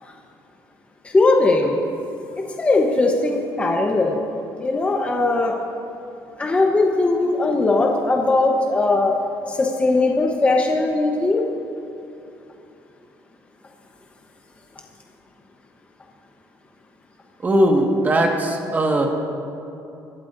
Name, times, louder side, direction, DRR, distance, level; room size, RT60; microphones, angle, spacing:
voice 1, 1.0-1.8 2.6-4.2 4.6-5.6 6.4-9.2 9.5-11.4, left 2 dB, 20° left, 0 dB, 1.1 m, -19 dB
voice 2, 17.4-19.1, right 1 dB, 25° right, 1 dB, 1.8 m, -19 dB
25.5 x 12.0 x 2.7 m, 2.8 s
cardioid pair, 135°, 7 cm